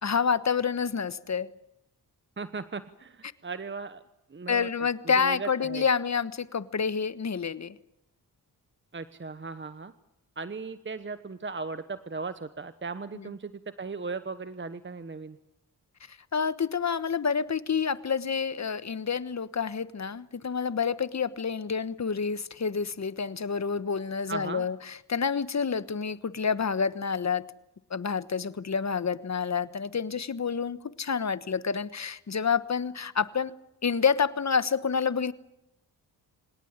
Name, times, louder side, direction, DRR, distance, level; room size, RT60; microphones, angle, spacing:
voice 1, 0.0-1.5 4.5-7.8 13.1-13.3 16.1-27.4 27.9-33.5 33.8-35.3, left 6 dB, 40° left, 15 dB, 1.3 m, -28 dB
voice 2, 2.4-4.0 4.3-4.7 5.2-5.8 8.9-9.9 10.4-13.5 13.8-15.4 24.3-24.7, right 4 dB, 30° right, 12 dB, 1.1 m, -37 dB
26.0 x 17.5 x 8.9 m, 0.88 s
cardioid pair, 65°, 41 cm